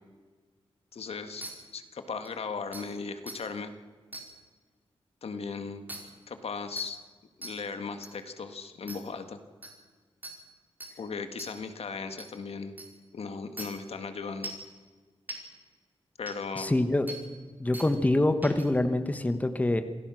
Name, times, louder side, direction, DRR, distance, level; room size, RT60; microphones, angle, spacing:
voice 1, 0.9-1.4 1.7-3.7 5.2-5.8 6.3-7.0 7.4-9.4 11.0-12.7 13.1-14.5 16.2-16.8, left 5 dB, 70° left, 8 dB, 1.8 m, -37 dB
sound 1, 1.4-1.5 2.2-2.3 2.7-2.8 3.3-3.4 4.1-4.2 5.9-6.0 6.8-6.9 7.4-7.5 8.0-8.1 8.9-9.0 9.6-9.7 10.2-10.3 10.8-10.9 11.4-11.5 12.2-12.3 12.8-12.9 13.6-13.7 14.4-14.6 15.3-15.4 16.3-16.4 17.1-17.2 17.7-17.9 18.4-18.6, right 2 dB, 20° right, 4.8 m, -40 dB
voice 2, 16.6-17.1 17.6-19.8, left 1 dB, 15° left, 9 dB, 1.2 m, -25 dB
27.5 x 18.0 x 6.3 m, 1.5 s
wide cardioid pair, 145°, 10 cm